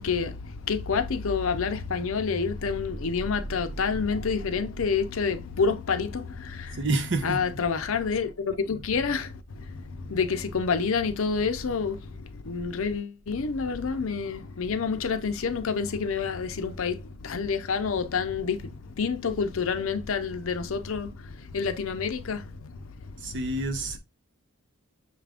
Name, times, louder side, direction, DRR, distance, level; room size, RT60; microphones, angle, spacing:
voice 1, 0.0-6.9 7.2-23.4, left 5 dB, 65° left, 0.6 m, -28 dB
voice 2, 6.7-7.4 23.2-24.0, right 2 dB, 55° right, 0.8 m, -28 dB
6.2 x 2.5 x 3.4 m
head